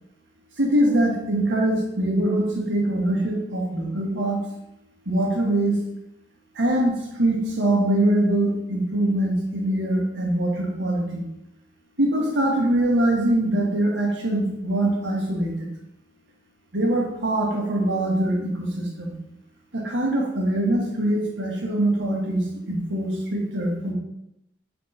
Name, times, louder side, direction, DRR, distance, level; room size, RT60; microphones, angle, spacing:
voice 1, 0.6-4.4 5.1-5.8 6.6-11.3 12.0-15.7 16.7-19.1 19.7-23.9, right 1 dB, 90° right, -2 dB, 1.8 m, -23 dB
5.0 x 4.3 x 5.8 m, 0.85 s
head